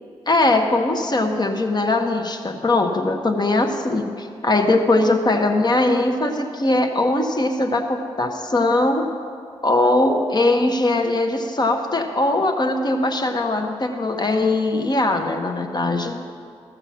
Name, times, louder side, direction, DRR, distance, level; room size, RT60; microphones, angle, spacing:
voice 1, 0.3-9.1 9.6-16.2, left 2 dB, 35° left, 4 dB, 1.3 m, -20 dB
13.5 x 6.7 x 6.1 m, 2.3 s
supercardioid pair, 40°, 12 cm